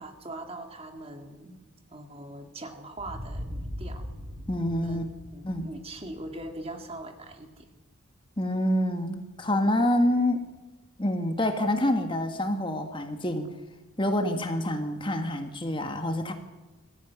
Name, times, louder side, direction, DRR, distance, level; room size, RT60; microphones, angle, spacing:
voice 1, 0.0-1.6 1.9-4.1 4.8-7.7, right 2 dB, 25° right, 5 dB, 2.0 m, -41 dB
sound 1, 3.0-7.6, equal, 45° right, 4.2 m, -40 dB
voice 2, 4.5-5.1 5.4-5.7 8.4-10.5 11.0-13.5 14.0-16.3, left 1 dB, 20° left, 6 dB, 1.6 m, -27 dB
22.5 x 15.0 x 9.4 m, 1.2 s
head